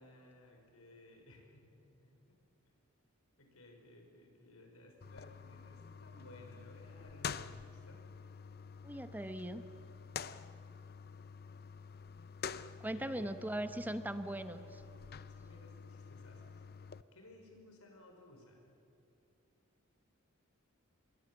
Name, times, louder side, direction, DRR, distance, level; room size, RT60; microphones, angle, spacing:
voice 1, 0.0-2.4 3.4-8.0 12.9-13.4 15.3-16.7 17.1-18.7, left 1 dB, 85° left, 2 dB, 5.7 m, -58 dB
sound 1, 5.0-17.0, left 6 dB, 45° left, 0.7 m, -48 dB
voice 2, 8.8-9.6 12.8-14.8, right 1 dB, 10° right, 10 dB, 1.0 m, -39 dB
27.0 x 22.0 x 7.9 m, 2.6 s
head